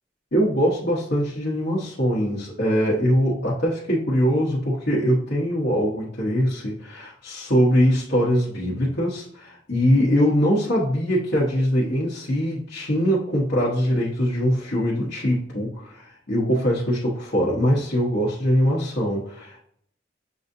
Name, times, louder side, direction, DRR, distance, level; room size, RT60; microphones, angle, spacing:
voice 1, 0.3-19.6, equal, 70° left, -8 dB, 1.1 m, -22 dB
7.0 x 2.6 x 2.7 m, 0.65 s
head